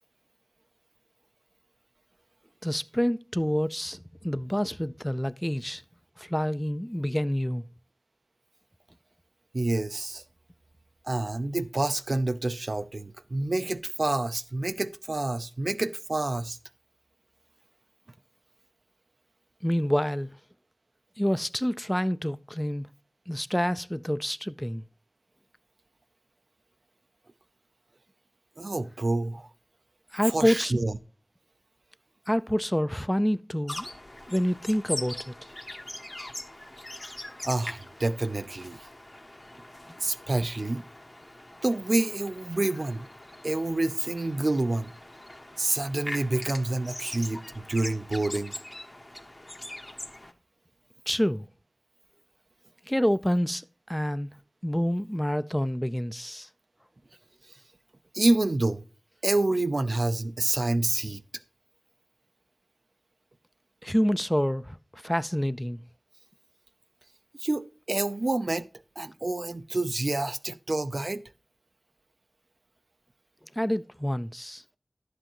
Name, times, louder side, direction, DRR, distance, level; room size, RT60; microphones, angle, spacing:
voice 1, 2.6-5.8 6.2-7.7 19.6-20.3 21.2-22.9 23.3-24.8 30.1-30.7 32.3-33.9 34.3-35.5 51.1-51.5 52.9-54.3 54.6-56.5 63.8-65.8 73.5-74.6, equal, 10° left, 0.4 m, -27 dB
voice 2, 9.5-10.2 11.0-16.6 28.6-29.5 30.3-31.0 37.4-38.8 40.0-40.8 41.6-43.1 43.4-44.9 45.6-48.5 58.1-58.8 59.2-61.2 67.4-68.7 69.0-71.2, right 2 dB, 70° right, 0.5 m, -28 dB
sound 1, 33.7-50.3, left 1 dB, 40° left, 1.0 m, -42 dB
11.0 x 7.7 x 3.0 m
wide cardioid pair, 50°, 0 cm